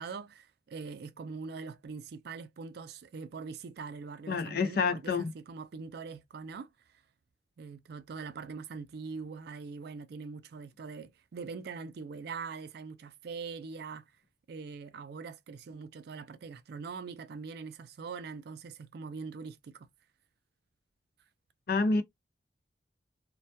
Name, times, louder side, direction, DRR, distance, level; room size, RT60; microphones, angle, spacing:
voice 1, 0.0-6.7 7.6-14.0 14.5-19.9, right 5 dB, 60° right, 0.3 m, -42 dB
voice 2, 4.3-5.3 21.7-22.0, left 4 dB, 55° left, 0.5 m, -28 dB
2.2 x 2.1 x 2.7 m
head